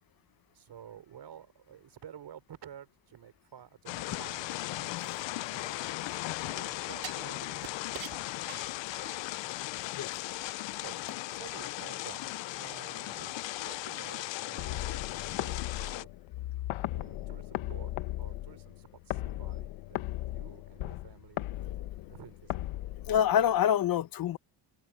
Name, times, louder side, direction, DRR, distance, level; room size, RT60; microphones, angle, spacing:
voice 1, 0.5-5.8 6.4-7.7 10.8-10.9 11.3-16.1 16.9-20.0 20.2-21.5 22.1-22.6, right 9 dB, 55° right, 4.1 m, -51 dB
sound 1, 3.9-16.0, left 17 dB, 65° left, 0.7 m, -37 dB
sound 2, 5.0-6.2 7.0-9.4 9.8-9.9, right 13 dB, 85° right, 2.6 m, -47 dB
sound 3, 14.6-23.6, left 15 dB, 85° left, 1.5 m, -37 dB
voice 2, 23.1-24.4, left 10 dB, 45° left, 0.9 m, -26 dB
cardioid pair, 115°, 48 cm